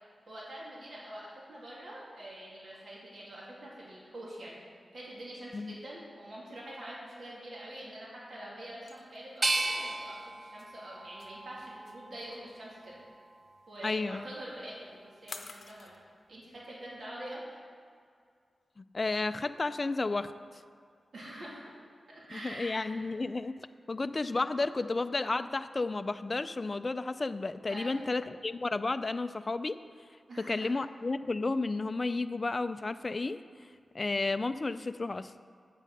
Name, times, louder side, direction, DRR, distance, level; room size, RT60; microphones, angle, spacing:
voice 1, 0.3-4.6 4.9-13.0 13.7-16.0 16.3-17.6 21.1-21.8 22.1-23.0 27.7-28.0 30.3-30.7, right 1 dB, 65° right, -6 dB, 2.4 m, -45 dB
sound 1, 8.9-16.0, left 4 dB, 65° left, 0.7 m, -50 dB
sound 2, 9.4-12.3 12.9-13.7, right 2 dB, 40° right, 0.5 m, -35 dB
voice 2, 13.8-14.2 18.8-20.3 22.3-29.8 30.4-33.4 33.9-35.3, left 3 dB, 40° left, 11 dB, 0.3 m, -32 dB
8.4 x 7.4 x 5.4 m, 2.2 s
wide cardioid pair, 80°, 0 cm